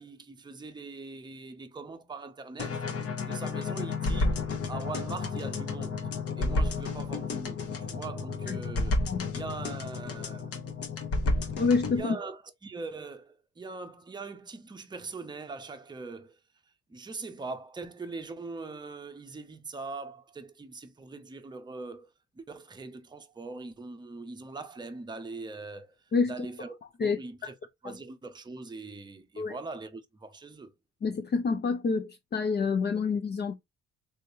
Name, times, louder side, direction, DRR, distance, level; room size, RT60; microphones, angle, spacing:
voice 1, 0.0-2.8 3.2-4.4 4.7-9.0 9.3-10.6 11.9-16.4 16.9-22.1 22.3-25.9 26.3-27.6 27.8-30.7, right 3 dB, 15° right, 0.7 m, -41 dB
sound 1, 2.6-12.0, left 3 dB, 50° left, 1.0 m, -31 dB
voice 2, 11.6-12.2 26.1-26.3 27.0-27.5 29.4-29.6 31.0-33.5, left 4 dB, 35° left, 0.5 m, -28 dB
3.4 x 3.2 x 2.7 m
cardioid pair, 90°, 30 cm